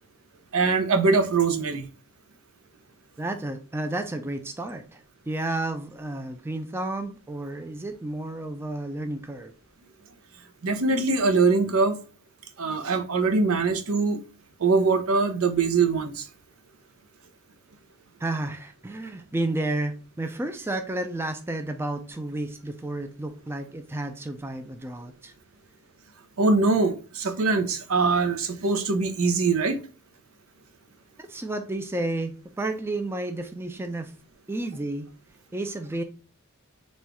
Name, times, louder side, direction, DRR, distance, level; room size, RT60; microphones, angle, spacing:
voice 1, 0.5-1.9 10.6-12.0 12.6-14.2 14.6-16.2 26.4-29.8, right 4 dB, 80° right, 0.7 m, -22 dB
voice 2, 3.2-9.5 18.2-25.3 31.2-34.1 34.5-35.1 35.5-36.0, right 2 dB, 10° right, 0.3 m, -31 dB
4.2 x 2.3 x 4.6 m
head